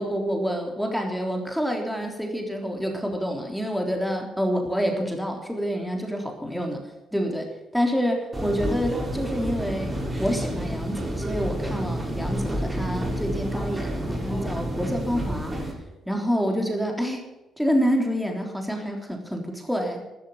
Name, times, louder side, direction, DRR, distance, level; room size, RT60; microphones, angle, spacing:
voice 1, 0.0-6.8 7.1-15.6 16.0-17.2 17.6-20.0, equal, ahead, 2 dB, 3.5 m, -27 dB
sound 1, 8.3-15.7, right 1 dB, 20° right, 6.4 m, -29 dB
13.5 x 13.0 x 7.2 m, 1.1 s
cardioid pair, 90°, 0 cm